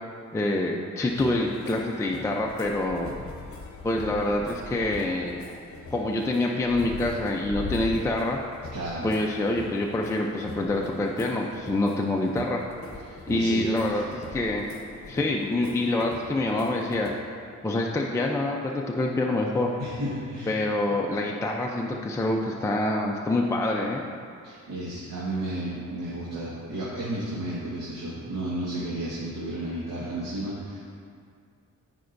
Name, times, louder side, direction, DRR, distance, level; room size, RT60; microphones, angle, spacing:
voice 1, 0.3-3.1 3.8-5.4 5.9-8.4 9.0-12.7 13.3-14.7 15.1-17.1 17.6-19.7 20.5-24.0, left 2 dB, 10° left, -1 dB, 0.5 m, -26 dB
sound 1, 1.1-17.2, left 3 dB, 45° left, 1.0 m, -41 dB
voice 2, 8.7-9.1 13.0-14.0 19.8-20.5 24.4-30.8, right 1 dB, 85° right, -7 dB, 1.6 m, -33 dB
14.0 x 5.2 x 2.6 m, 2.3 s
cardioid pair, 120°, 31 cm